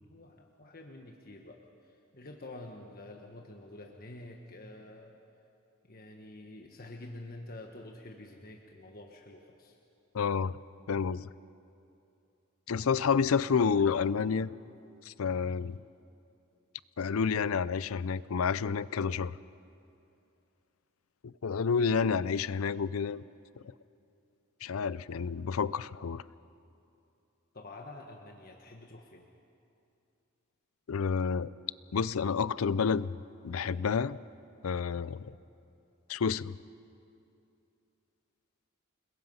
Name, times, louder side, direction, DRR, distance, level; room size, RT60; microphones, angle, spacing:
voice 1, 0.0-5.1 5.8-9.8 13.3-14.0 14.6-14.7 15.6-15.8 27.5-29.3 35.3-35.5, left 2 dB, 45° left, 1 dB, 1.4 m, -48 dB
voice 2, 10.1-10.6 10.9-11.3 12.7-14.5 15.1-15.8 17.0-19.3 21.2-23.2 24.6-26.2 30.9-31.5 31.9-33.1 33.4-34.2 34.6-35.3 36.1-36.6, left 6 dB, 70° left, 18 dB, 0.5 m, -29 dB
29.5 x 21.0 x 5.6 m, 2.7 s
head